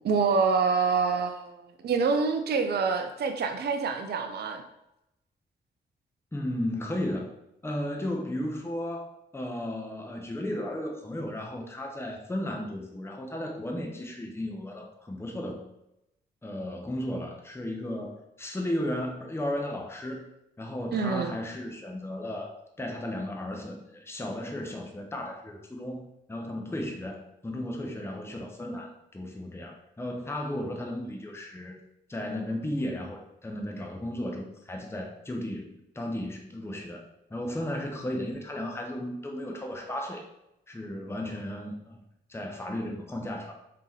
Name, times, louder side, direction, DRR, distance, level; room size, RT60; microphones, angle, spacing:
voice 1, 0.0-4.6 20.9-21.4, right 5 dB, 50° right, 6 dB, 0.5 m, -26 dB
voice 2, 6.3-7.3 7.6-15.6 16.4-20.3 20.6-26.0 26.3-31.8 32.1-37.0 37.3-40.2 40.7-42.0 42.3-43.5, left 1 dB, 10° left, 1 dB, 0.8 m, -34 dB
3.5 x 2.9 x 3.2 m, 0.86 s
supercardioid pair, 45°, 21 cm